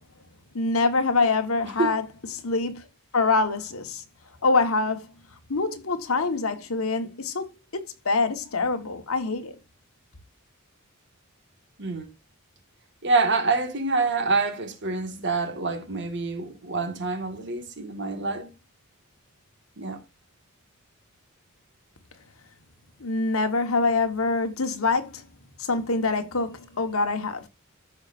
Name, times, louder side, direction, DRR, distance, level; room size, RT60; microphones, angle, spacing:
voice 1, 0.5-2.8 3.1-4.0 4.4-5.1 5.5-9.6 23.0-25.2 25.6-27.5, left 3 dB, 75° left, 1.4 m, -25 dB
voice 2, 13.0-18.5 19.8-20.0, right 3 dB, 55° right, 1.8 m, -26 dB
14.5 x 5.8 x 2.6 m
head